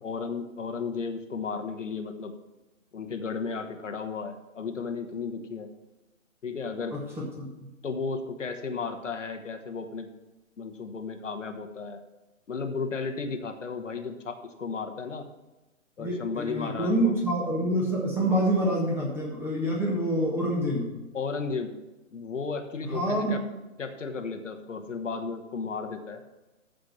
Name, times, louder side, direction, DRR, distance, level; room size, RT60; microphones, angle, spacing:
voice 1, 0.0-2.3 2.9-5.7 6.4-7.0 7.8-10.1 10.6-12.0 12.5-15.3 16.0-17.1 21.1-21.7 22.1-23.4 23.8-26.2, left 4 dB, 65° left, 6 dB, 1.3 m, -34 dB
voice 2, 6.9-7.5 16.0-20.9 22.8-23.4, right 1 dB, 5° right, -3 dB, 1.6 m, -27 dB
13.5 x 5.2 x 6.1 m, 1.1 s
figure-of-eight pair, 135°, 40 cm